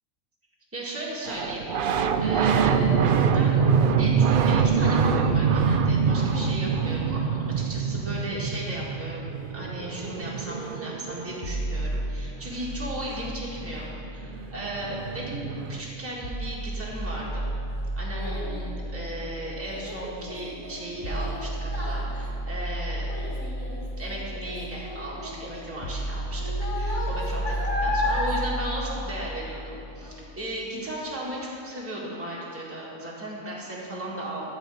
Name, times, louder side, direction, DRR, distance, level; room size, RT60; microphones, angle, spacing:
voice 1, 0.7-1.7 1.9-3.6 4.0-7.3 7.5-17.4 18.0-23.2 24.0-26.4 26.7-34.4, right 1 dB, 10° right, -5 dB, 1.7 m, -36 dB
sound 1, 1.3-11.7 13.7-13.8 14.0-15.8, right 6 dB, 65° right, 0.5 m, -24 dB
sound 2, 11.4-15.4 16.2-30.3, right 1 dB, 40° left, 0.5 m, -33 dB
Child speech kid speaking, 17.0-29.7 30.0-30.4 30.9-31.0, left 2 dB, 25° left, 2.8 m, -35 dB
13.0 x 4.4 x 8.3 m, 2.6 s
omnidirectional pair, 1.4 m